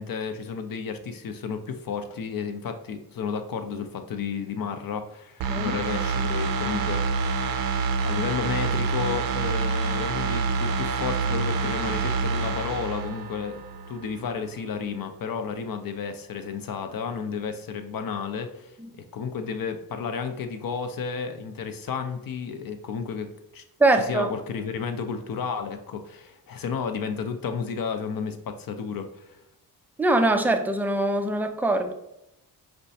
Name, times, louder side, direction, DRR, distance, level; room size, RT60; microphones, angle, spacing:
voice 1, 0.0-7.1 8.0-13.6 13.9-18.7 19.1-23.6 24.0-29.4, left 6 dB, 50° left, 0.6 m, -32 dB
sound 1, 5.4-14.1 14.4-14.5, right 5 dB, 50° right, 0.5 m, -27 dB
voice 2, 23.8-24.3 30.0-31.9, right 2 dB, 5° right, 0.3 m, -22 dB
5.1 x 2.2 x 2.7 m
supercardioid pair, 50°, 44 cm